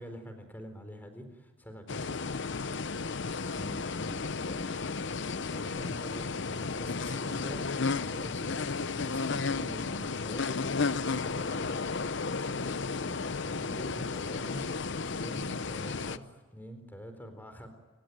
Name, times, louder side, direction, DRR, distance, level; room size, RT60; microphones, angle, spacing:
voice 1, 0.0-2.3 5.5-8.6 9.0-10.6 11.1-11.9 13.2-14.7 15.1-17.7, equal, 10° left, 7 dB, 3.9 m, -46 dB
sound 1, 1.9-16.2, left 4 dB, 55° left, 0.7 m, -33 dB
voice 2, 3.5-4.8 9.4-9.8 11.5-11.7 12.9-13.4, left 1 dB, 35° left, 2 dB, 2.0 m, -45 dB
29.0 x 17.0 x 9.3 m, 1.3 s
head